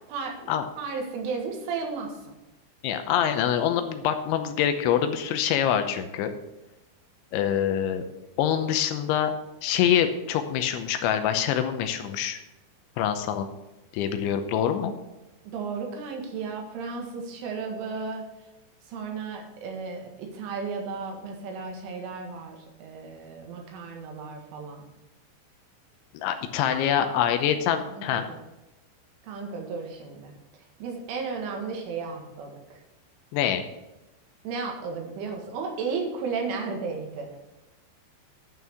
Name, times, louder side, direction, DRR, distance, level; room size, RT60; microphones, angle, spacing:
voice 1, 0.1-0.5 0.8-2.2 15.5-18.2 18.9-24.8 26.7-27.2 27.9-28.4 29.2-30.4 30.8-32.8 34.4-37.3, right 5 dB, 80° right, 1 dB, 4.2 m, -34 dB
voice 2, 2.8-6.3 7.3-8.0 8.4-9.3 9.6-12.4 13.0-13.5 13.9-14.9 26.1-28.3 33.3-33.6, left 9 dB, 80° left, 8 dB, 3.1 m, -25 dB
11.0 x 6.0 x 6.9 m, 0.98 s
omnidirectional pair, 5.5 m